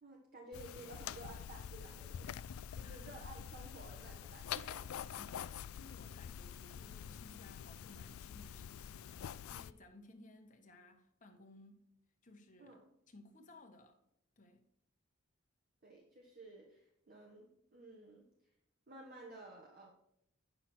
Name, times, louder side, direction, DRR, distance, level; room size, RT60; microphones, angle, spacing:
voice 1, 0.0-5.1 12.6-12.9 15.8-18.2 18.9-19.9, right 2 dB, 45° right, 1.3 m, -54 dB
sound 1, 0.5-9.7, left 9 dB, 90° left, 0.3 m, -46 dB
voice 2, 2.8-3.2 5.2-11.9 12.2-12.8 13.1-14.0 14.4-14.7, left 2 dB, 40° left, 1.2 m, -59 dB
9.0 x 5.9 x 4.4 m
head